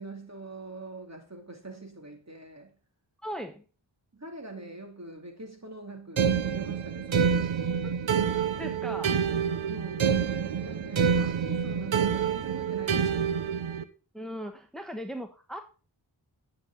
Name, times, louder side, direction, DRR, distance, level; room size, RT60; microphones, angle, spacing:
voice 1, 0.0-2.8 4.1-7.5 9.7-10.2 10.6-13.2, right 2 dB, 35° right, 2.8 m, -43 dB
voice 2, 3.2-3.6 7.8-7.9 8.6-9.2 14.1-15.6, equal, ahead, 1.2 m, -38 dB
sound 1, 6.2-13.8, right 7 dB, 85° right, 0.9 m, -27 dB
10.0 x 7.0 x 3.9 m
cardioid pair, 45°, 46 cm